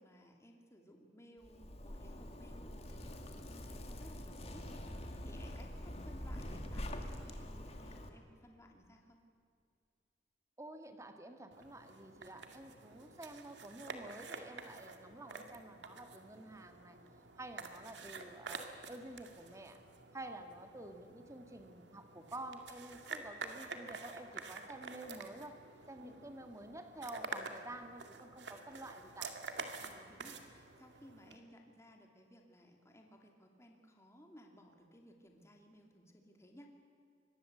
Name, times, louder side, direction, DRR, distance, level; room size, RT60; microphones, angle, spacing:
voice 1, 0.0-9.2 26.0-26.1 29.8-36.7, equal, 15° left, 2 dB, 2.7 m, -59 dB
Zipper (clothing), 1.4-8.1, left 1 dB, 35° left, 2.3 m, -45 dB
voice 2, 10.6-17.0 17.4-19.8 20.1-25.6 25.9-29.3, right 1 dB, 15° right, 6 dB, 2.0 m, -50 dB
sound 1, 11.5-31.4, right 4 dB, 75° right, 2.2 m, -49 dB
24.5 x 20.5 x 8.0 m, 2.3 s
head